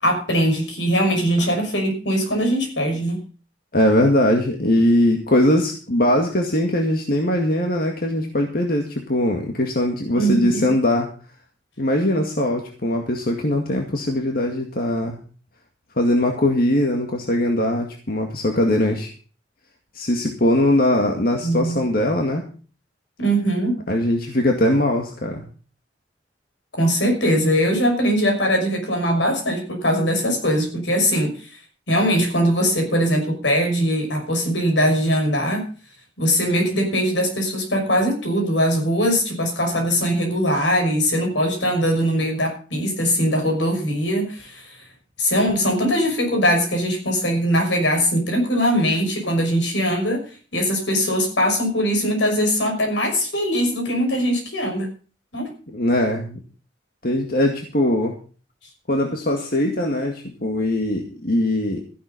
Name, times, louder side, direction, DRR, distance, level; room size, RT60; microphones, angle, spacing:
voice 1, 0.0-3.2 10.2-10.7 21.4-21.8 23.2-23.8 26.8-31.5 31.9-35.7 36.2-44.8 45.2-50.2 50.5-54.9 55.3-55.5, equal, 80° left, 3 dB, 5.9 m, -21 dB
voice 2, 3.7-11.1 11.8-15.2 16.0-19.1 19.9-22.4 23.9-25.4 55.7-56.4 57.0-58.2 58.9-61.8, left 1 dB, 55° left, 2 dB, 2.1 m, -21 dB
14.0 x 11.0 x 5.3 m, 0.38 s
head